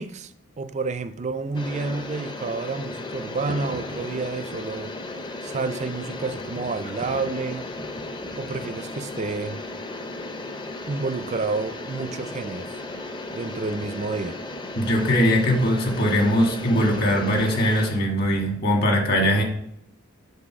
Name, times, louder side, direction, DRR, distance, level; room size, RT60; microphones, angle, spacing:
voice 1, 0.0-4.9 5.4-7.7 8.3-9.6 10.9-12.8 13.3-14.4, right 4 dB, 30° right, 0.4 m, -30 dB
sound 1, 1.5-17.9, left 2 dB, 20° left, 0.6 m, -35 dB
voice 2, 14.7-19.4, equal, 45° left, 1.6 m, -21 dB
7.5 x 3.8 x 5.9 m
head